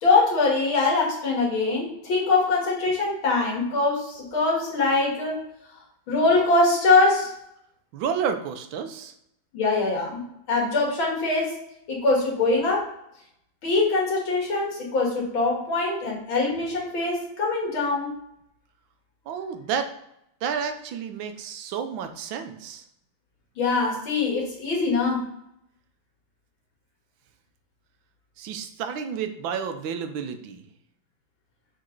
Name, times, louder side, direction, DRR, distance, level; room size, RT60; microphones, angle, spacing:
voice 1, 0.0-5.4 6.1-7.3 9.5-11.5 11.9-12.9 13.6-18.1 23.6-25.3, left 3 dB, 90° left, -2 dB, 2.7 m, -23 dB
voice 2, 7.9-9.1 19.3-19.9 20.4-22.8 28.4-30.6, right 7 dB, 80° right, 8 dB, 1.5 m, -30 dB
6.6 x 4.1 x 3.8 m, 0.79 s
omnidirectional pair, 2.1 m